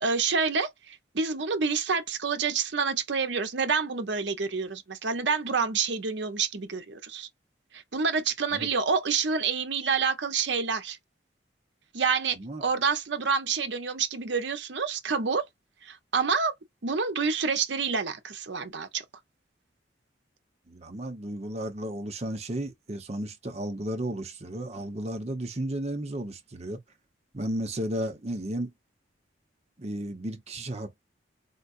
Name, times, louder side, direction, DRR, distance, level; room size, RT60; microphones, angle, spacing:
voice 1, 0.0-7.3 7.7-11.0 11.9-15.4 15.8-16.5 16.8-19.0, right 5 dB, 70° right, 0.8 m, -28 dB
voice 2, 20.7-26.8 27.3-28.7 29.8-31.0, right 1 dB, 35° right, 0.9 m, -33 dB
4.5 x 2.3 x 2.5 m
head